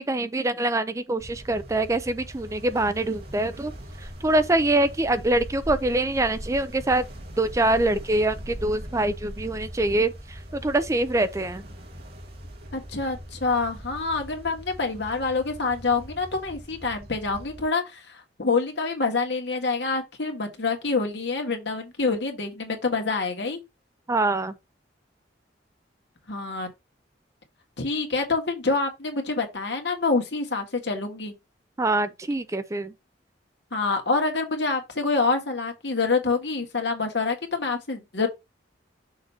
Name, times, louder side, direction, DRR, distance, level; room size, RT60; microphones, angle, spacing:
voice 1, 0.0-3.7 4.0-7.1 7.4-11.6 24.1-24.5 31.8-32.9, right 2 dB, 15° right, 0.4 m, -24 dB
sound 1, 1.2-17.7, equal, 60° right, 2.0 m, -41 dB
voice 2, 12.7-23.6 26.3-26.7 27.8-31.3 33.7-38.3, left 4 dB, 65° left, 1.8 m, -26 dB
6.5 x 2.9 x 5.6 m
head